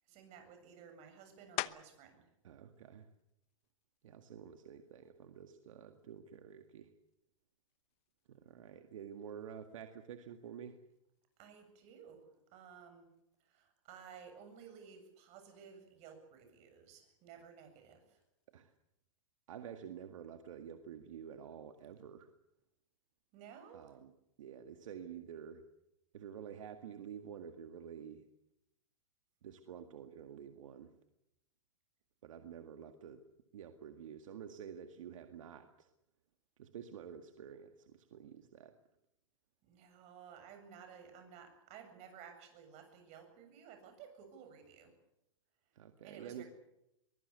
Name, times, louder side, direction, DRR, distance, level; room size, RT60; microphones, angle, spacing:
voice 1, 0.1-2.3 11.4-13.1 13.4-18.2 23.3-23.9 39.6-44.9 46.0-46.5, right 7 dB, 40° right, 7 dB, 7.8 m, -55 dB
sound 1, 1.6-2.2 2.7-7.1 7.7-12.8 13.1-18.8, left 19 dB, 40° left, 0.9 m, -51 dB
voice 2, 2.4-3.1 4.0-6.9 8.3-10.8 18.5-18.7 19.5-22.3 23.7-24.1 24.4-25.6 26.1-28.3 29.4-30.9 32.2-33.2 33.5-35.9 36.6-38.7 45.8-46.4, right 8 dB, 75° right, 7 dB, 1.9 m, -49 dB
23.0 x 21.0 x 8.3 m, 0.85 s
hypercardioid pair, 120°, 17 cm